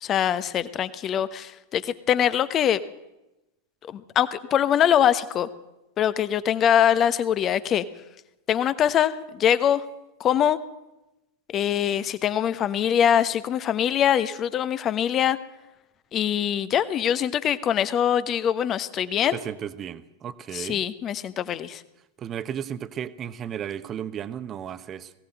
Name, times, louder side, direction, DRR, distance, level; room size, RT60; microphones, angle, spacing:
voice 1, 0.0-2.8 3.9-5.5 6.0-7.8 8.5-9.8 10.2-10.6 11.5-15.4 16.1-19.4 20.5-21.8, left 9 dB, 30° left, 15 dB, 1.1 m, -23 dB
voice 2, 19.3-20.8 22.2-25.1, right 9 dB, 25° right, 13 dB, 1.1 m, -34 dB
21.0 x 17.0 x 7.9 m, 0.96 s
figure-of-eight pair, 90°, 0 cm